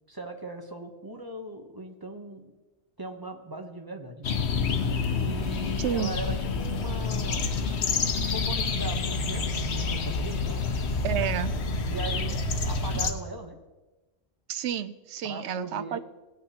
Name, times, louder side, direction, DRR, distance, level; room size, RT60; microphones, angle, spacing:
voice 1, 0.1-2.5 3.0-4.3 5.2-7.5 8.3-10.6 11.9-13.6 15.2-16.0, right 2 dB, 25° right, 4 dB, 0.8 m, -39 dB
sound 1, 4.2-13.1, left 4 dB, 75° left, 1.1 m, -28 dB
voice 2, 5.8-6.1 11.0-11.5 14.5-16.0, right 10 dB, 90° right, 13 dB, 0.9 m, -30 dB
17.0 x 8.8 x 2.9 m, 1.1 s
omnidirectional pair, 1.1 m